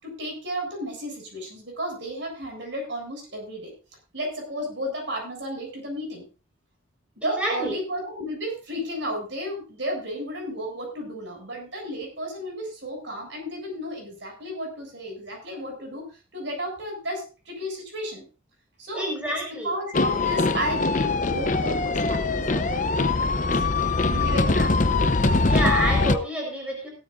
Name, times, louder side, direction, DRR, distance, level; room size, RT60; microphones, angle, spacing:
voice 1, 0.0-3.7 4.1-6.2 7.2-18.3 18.8-23.6 24.0-24.7, equal, 60° right, 1 dB, 7.4 m, -33 dB
voice 2, 7.4-7.7 18.9-19.7 24.4-24.7 25.4-26.9, equal, 5° right, -1 dB, 4.9 m, -28 dB
sound 1, 19.9-26.2, left 3 dB, 40° left, 0.8 m, -22 dB
17.0 x 13.0 x 2.6 m, 0.33 s
head